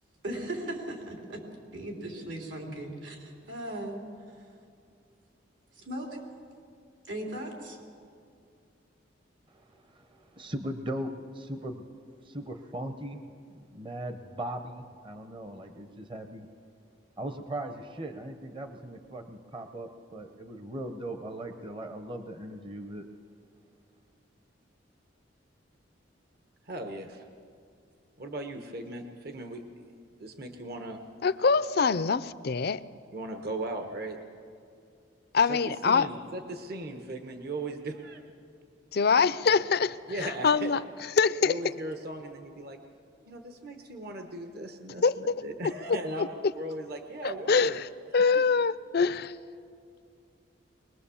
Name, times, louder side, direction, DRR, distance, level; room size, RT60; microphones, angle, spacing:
voice 1, 0.2-1.4 1.7-4.0 5.8-6.1 7.1-7.8, right 1 dB, 75° right, 0 dB, 3.6 m, -37 dB
voice 2, 9.5-11.8 12.2-16.5 17.2-23.1, right 1 dB, 25° right, 7 dB, 0.9 m, -39 dB
voice 3, 26.7-27.3 28.2-29.8 30.2-31.0 33.1-34.2 35.5-38.2 39.0-39.1 40.1-40.8 41.4-42.8 43.3-47.8 48.2-48.4, right 1 dB, 55° right, 5 dB, 1.3 m, -38 dB
voice 4, 31.2-32.8 35.3-36.1 38.9-40.8 41.2-41.5 45.0-45.3 47.2-47.7 48.1-49.3, left 5 dB, 60° left, 15 dB, 0.6 m, -24 dB
22.0 x 21.0 x 7.1 m, 2.4 s
head